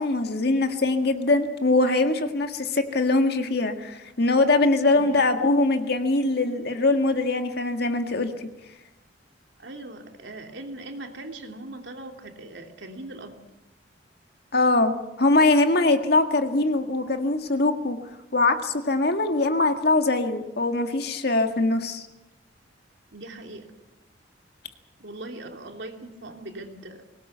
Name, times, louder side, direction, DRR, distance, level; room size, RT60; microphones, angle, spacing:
voice 1, 0.0-8.5 14.5-18.0 18.3-22.1, left 2 dB, 60° left, 6 dB, 1.9 m, -22 dB
voice 2, 4.9-5.5 9.6-13.4 23.1-23.7 25.0-27.0, right 2 dB, 70° right, 3 dB, 3.0 m, -40 dB
22.0 x 19.0 x 8.1 m, 0.99 s
head